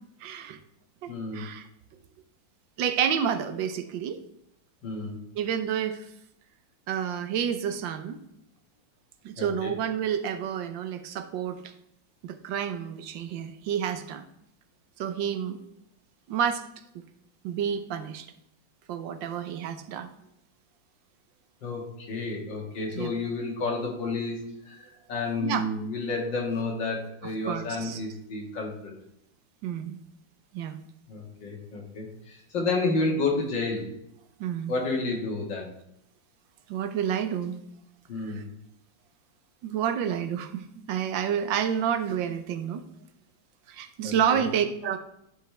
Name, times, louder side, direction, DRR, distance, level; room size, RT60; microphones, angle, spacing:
voice 1, 0.2-0.6 1.0-1.7 2.8-4.2 5.4-6.1 6.9-8.2 9.2-11.7 12.2-14.2 15.0-15.6 16.3-16.6 16.9-17.0 17.4-18.3 18.9-20.1 23.0-23.1 25.4-25.6 27.5-28.0 29.6-30.0 30.5-30.8 34.4-34.7 36.7-37.6 38.2-38.4 39.6-42.8 43.7-45.0, right 8 dB, 75° right, 8 dB, 1.4 m, -29 dB
voice 2, 1.1-1.5 4.8-5.2 9.4-9.7 21.6-28.9 31.1-33.9 34.7-35.7 38.1-38.5 44.0-44.5, left 3 dB, 65° left, -1 dB, 2.5 m, -31 dB
11.5 x 5.0 x 3.3 m, 0.79 s
omnidirectional pair, 2.1 m